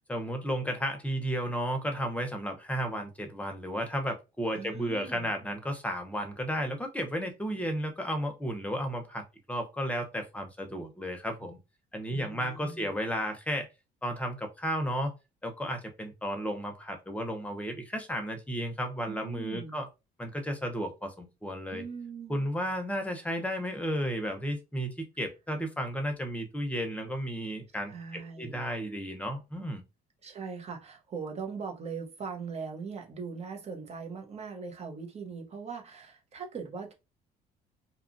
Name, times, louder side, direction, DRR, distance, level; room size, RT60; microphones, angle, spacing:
voice 1, 0.1-9.2 9.5-11.6 11.9-13.7 14.0-15.1 15.4-19.9 20.2-21.8 22.3-29.8, equal, 10° left, 0.8 m, -33 dB
voice 2, 4.5-5.3 12.1-12.9 19.1-19.8 21.7-22.5 27.8-28.7 30.2-36.9, right 5 dB, 40° right, 0.8 m, -40 dB
2.8 x 2.4 x 2.6 m
cardioid pair, 110°, 17 cm